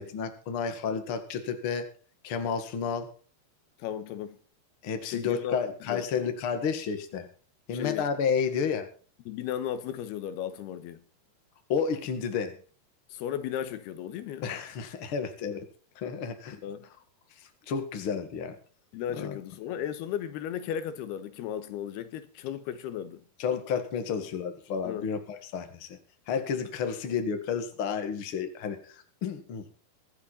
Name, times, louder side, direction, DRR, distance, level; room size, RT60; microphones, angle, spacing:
voice 1, 0.0-1.9 2.2-3.1 4.8-7.3 7.7-8.9 11.7-12.6 14.4-15.7 16.0-16.6 17.7-18.6 19.2-19.3 23.4-26.0 26.3-29.6, left 6 dB, 45° left, 2.1 m, -31 dB
voice 2, 3.8-4.4 5.0-5.6 5.9-6.1 7.7-8.1 9.3-11.0 13.1-14.5 16.6-16.9 18.9-23.2 24.8-25.1, left 10 dB, 85° left, 3.1 m, -35 dB
24.0 x 8.2 x 4.2 m
omnidirectional pair, 4.5 m